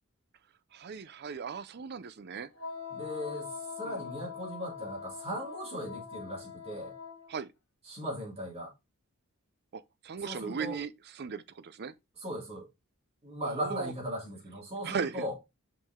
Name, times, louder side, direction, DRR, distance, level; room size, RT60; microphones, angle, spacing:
voice 1, 0.7-2.5 3.8-4.0 7.3-7.5 9.7-11.9 13.4-13.9 14.8-15.2, right 6 dB, 50° right, 0.5 m, -37 dB
Wind instrument woodwind instrument, 2.6-7.3, left 6 dB, 70° left, 1.7 m, -42 dB
voice 2, 2.9-6.9 7.8-8.7 10.2-10.8 12.2-12.7 13.2-15.3, equal, 30° right, 2.8 m, -38 dB
5.3 x 5.3 x 3.6 m
head